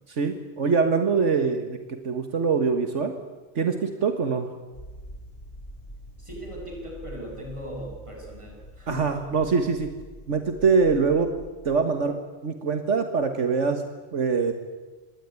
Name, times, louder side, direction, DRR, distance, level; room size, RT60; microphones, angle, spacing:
voice 1, 0.1-3.2 3.6-4.5 8.9-9.9 10.3-11.3 11.7-13.8 14.1-14.5, right 5 dB, 75° right, 7 dB, 1.9 m, -24 dB
sound 1, 4.7-11.5, equal, 50° left, 8.1 m, -44 dB
voice 2, 6.2-9.2, equal, 25° right, 0 dB, 7.6 m, -38 dB
26.5 x 19.5 x 9.7 m, 1.3 s
omnidirectional pair, 1.2 m